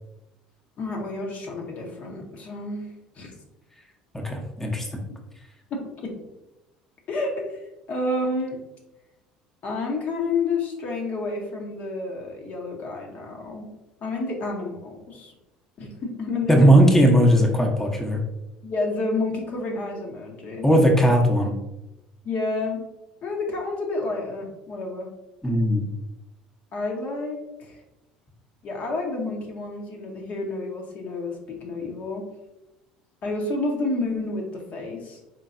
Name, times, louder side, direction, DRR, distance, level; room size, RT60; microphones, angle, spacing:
voice 1, 0.8-2.9 3.2-3.3 5.7-6.1 7.1-7.6 7.9-8.6 9.6-13.7 14.0-15.3 15.8-16.9 18.6-20.7 22.2-22.8 23.2-25.1 26.7-27.4 27.7-27.8 28.6-32.2 33.2-35.2, left 3 dB, 45° left, 1 dB, 0.9 m, -30 dB
voice 2, 4.1-4.9 16.5-18.2 20.6-21.5 25.4-25.8, equal, 10° left, 0 dB, 0.8 m, -18 dB
4.5 x 3.7 x 2.5 m, 0.98 s
figure-of-eight pair, 60°, 4 cm